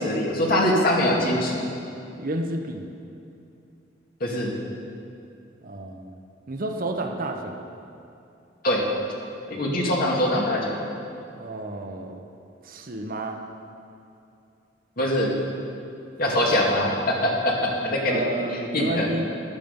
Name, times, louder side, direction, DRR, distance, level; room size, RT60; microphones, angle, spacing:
voice 1, 0.0-1.7 4.2-4.5 8.6-8.9 9.5-10.8 15.0-15.3 16.2-18.2 18.7-19.1, left 1 dB, 55° left, -2 dB, 2.3 m, -23 dB
voice 2, 2.2-2.9 5.6-6.1 6.5-7.7 11.3-12.3 12.6-13.4 16.3-16.4 18.1-19.2, right 2 dB, 50° right, 3 dB, 1.1 m, -31 dB
14.5 x 11.5 x 5.4 m, 2.7 s
head